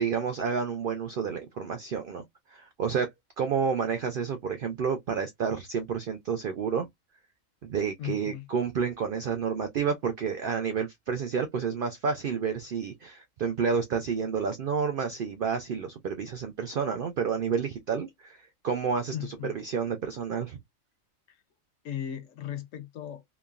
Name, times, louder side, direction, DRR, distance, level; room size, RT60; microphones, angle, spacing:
voice 1, 0.0-2.2 2.5-3.1 3.4-6.9 7.6-20.6, right 6 dB, 75° right, 0.5 m, -30 dB
voice 2, 8.0-8.5 19.1-19.6 21.3-21.4 21.8-23.2, left 11 dB, 70° left, 1.0 m, -37 dB
3.0 x 2.2 x 2.3 m
omnidirectional pair, 1.4 m